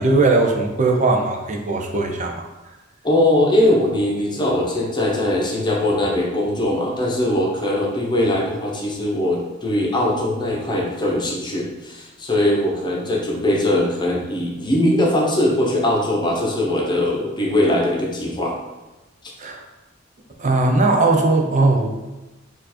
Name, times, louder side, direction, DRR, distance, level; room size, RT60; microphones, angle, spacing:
voice 1, 0.0-2.8 19.4-19.6 20.4-21.9, right 3 dB, 35° right, 2 dB, 0.5 m, -19 dB
voice 2, 3.0-18.5, left 1 dB, 20° left, -2 dB, 0.8 m, -20 dB
4.4 x 2.6 x 4.2 m, 1.1 s
head